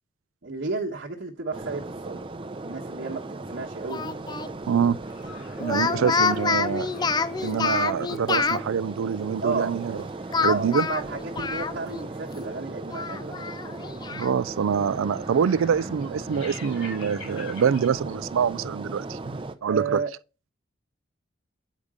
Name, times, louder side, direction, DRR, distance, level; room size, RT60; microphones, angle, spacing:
voice 1, 0.4-2.2 2.6-4.2 5.8-6.1 9.4-9.8 10.5-13.5 19.6-20.1, right 4 dB, 60° right, 1.2 m, -32 dB
sound 1, 1.5-19.6, right 2 dB, 25° right, 0.6 m, -37 dB
Speech, 3.9-4.5 5.6-8.6 10.3-12.1 12.4-12.5 12.9-14.3, left 5 dB, 20° left, 0.4 m, -27 dB
voice 2, 4.7-5.0 5.6-6.9 7.4-10.0 10.4-10.9 14.1-20.0, right 7 dB, 90° right, 0.4 m, -25 dB
sound 2, 5.0-17.9, left 3 dB, 80° left, 4.3 m, -49 dB
8.5 x 5.2 x 4.9 m
head